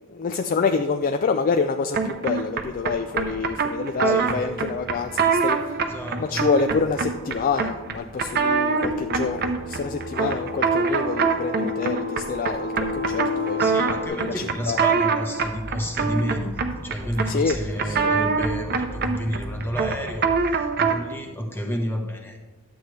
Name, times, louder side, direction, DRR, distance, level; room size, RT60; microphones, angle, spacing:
voice 1, 0.0-5.6 6.2-13.6 14.1-14.8 17.3-18.2, left 5 dB, 40° left, 7 dB, 0.3 m, -27 dB
sound 1, 1.9-21.1, right 5 dB, 45° right, 0.7 m, -25 dB
voice 2, 4.0-4.4 5.8-6.5 13.6-22.5, equal, 10° left, 3 dB, 1.1 m, -30 dB
sound 2, 6.7-14.1, left 4 dB, 85° left, 2.1 m, -33 dB
sound 3, 15.4-20.4, equal, 10° right, 0.9 m, -38 dB
11.5 x 8.1 x 3.2 m, 1.2 s
head